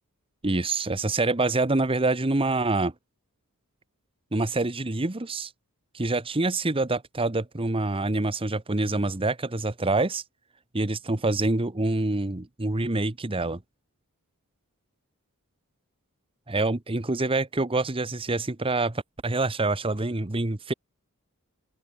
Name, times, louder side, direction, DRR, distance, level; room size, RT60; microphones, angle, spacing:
voice 1, 0.4-2.9 4.3-5.5 5.9-10.2 10.7-13.6 16.5-20.7, right 2 dB, 25° right, 1.1 m, -26 dB
open air
head